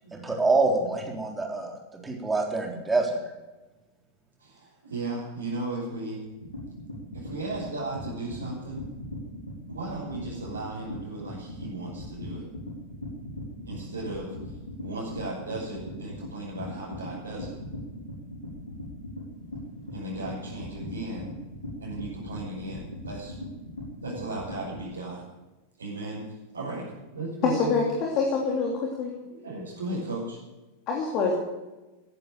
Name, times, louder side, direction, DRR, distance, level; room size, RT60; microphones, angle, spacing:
voice 1, 0.1-3.2, right 3 dB, 10° right, 0 dB, 3.6 m, -26 dB
voice 2, 4.4-6.2 7.1-8.8 9.7-12.4 13.7-14.3 14.8-17.6 19.9-21.3 21.8-23.4 24.0-25.2 25.8-26.2 26.5-27.8 29.3-30.4, right 2 dB, 75° right, -6 dB, 6.3 m, -36 dB
sound 1, 6.4-24.8, left 1 dB, 80° left, 4.7 m, -39 dB
voice 3, 27.4-28.7 29.0-29.1 30.9-31.3, left 5 dB, 40° left, 0 dB, 3.3 m, -25 dB
16.5 x 10.5 x 6.9 m, 1.1 s
figure-of-eight pair, 90°, 0 cm